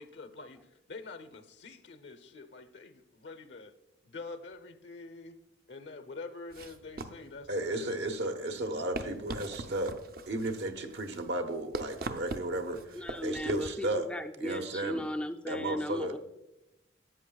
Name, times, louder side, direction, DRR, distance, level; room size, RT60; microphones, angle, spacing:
voice 1, 0.0-3.7 4.0-5.4 5.7-8.0, left 3 dB, 70° left, 10 dB, 0.7 m, -46 dB
sound 1, 6.5-13.7, right 2 dB, 50° right, 0.5 m, -42 dB
voice 2, 7.5-9.9 10.3-14.1 14.4-15.1 15.5-16.1, right 1 dB, 70° right, 6 dB, 1.0 m, -34 dB
voice 3, 13.0-16.2, left 1 dB, 5° left, 5 dB, 0.4 m, -36 dB
13.5 x 8.5 x 2.3 m, 0.91 s
head